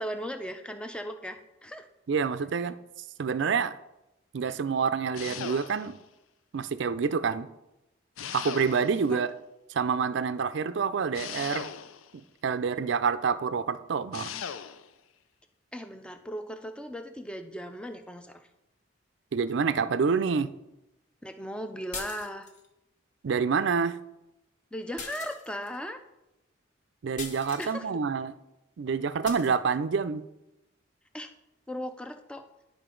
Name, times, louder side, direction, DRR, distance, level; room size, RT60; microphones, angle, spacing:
voice 1, 0.0-1.9 9.1-9.3 15.7-18.5 21.2-22.5 24.7-26.0 27.6-28.0 31.1-31.3 31.7-32.5, equal, 5° left, 7 dB, 0.4 m, -37 dB
voice 2, 2.1-2.7 3.2-3.7 4.3-6.0 6.5-7.5 8.3-9.3 9.7-11.7 12.4-14.3 19.3-20.5 23.2-24.0 27.0-28.4 28.8-30.2, right 5 dB, 65° right, 13 dB, 0.4 m, -27 dB
sound 1, 5.1-6.1 8.2-9.1 11.1-12.2 14.1-14.9, left 8 dB, 85° left, 0.4 m, -39 dB
sound 2, 21.9-22.7 25.0-25.8 27.2-27.8 29.2-29.5, left 5 dB, 40° left, 0.7 m, -41 dB
11.0 x 5.0 x 3.8 m, 0.93 s
head